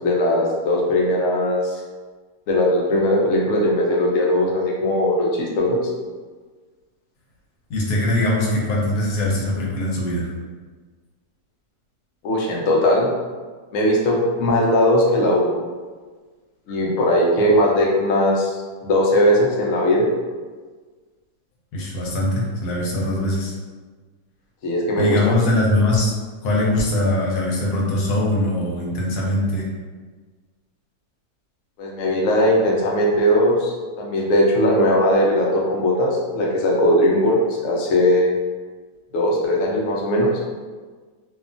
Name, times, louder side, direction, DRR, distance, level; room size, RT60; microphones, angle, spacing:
voice 1, 0.0-1.8 2.5-5.8 12.2-13.1 13.7-15.6 16.7-20.1 24.6-25.3 31.8-38.3 39.1-40.3, left 1 dB, 65° left, -3 dB, 0.8 m, -19 dB
voice 2, 7.7-10.3 21.7-23.6 25.0-26.1 26.4-29.7, left 1 dB, 85° left, -3 dB, 1.2 m, -21 dB
2.7 x 2.3 x 2.5 m, 1.4 s
omnidirectional pair, 1.6 m